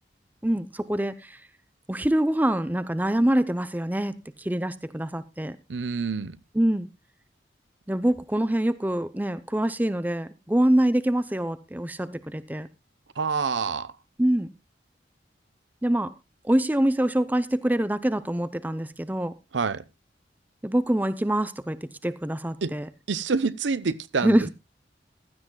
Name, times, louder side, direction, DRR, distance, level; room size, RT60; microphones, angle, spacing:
voice 1, 0.4-1.4 1.9-5.6 6.5-6.9 7.9-12.7 14.2-14.5 15.8-16.1 16.4-19.3 20.6-22.9 24.2-24.5, right 1 dB, 10° right, 0.6 m, -25 dB
voice 2, 5.7-6.4 13.2-13.9 19.5-19.8 22.6-22.7 23.1-24.5, right 4 dB, 90° right, 0.7 m, -27 dB
15.5 x 13.0 x 2.2 m
head